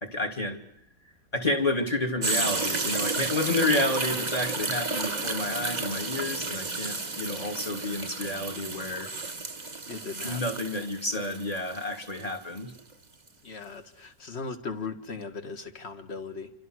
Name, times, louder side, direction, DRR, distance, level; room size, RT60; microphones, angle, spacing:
voice 1, 0.0-0.6 1.3-9.1 10.2-12.7, left 2 dB, 20° left, 6 dB, 2.8 m, -30 dB
sound 1, 2.2-12.8 13.3-13.4, right 3 dB, 25° right, 1.8 m, -32 dB
voice 2, 9.9-10.6 13.4-16.5, left 4 dB, 40° left, 8 dB, 1.9 m, -38 dB
28.5 x 25.5 x 6.4 m, 0.77 s
omnidirectional pair, 1.9 m